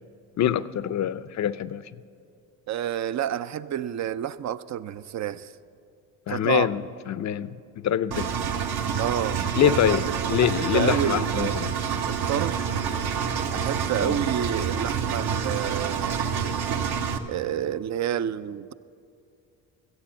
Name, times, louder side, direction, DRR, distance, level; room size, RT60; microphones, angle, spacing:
voice 1, 0.4-1.8 6.3-6.8 7.1-8.5 9.6-11.7 14.0-14.2, left 10 dB, 45° left, 16 dB, 0.5 m, -25 dB
voice 2, 2.7-5.5 6.3-6.7 9.0-9.7 10.1-11.7 12.1-12.6 13.5-16.3 17.3-18.7, right 10 dB, 45° right, 15 dB, 0.4 m, -29 dB
Engine, 8.1-17.2, right 7 dB, 65° right, 1.1 m, -27 dB
14.5 x 8.2 x 7.4 m, 2.5 s
supercardioid pair, 75°, 41 cm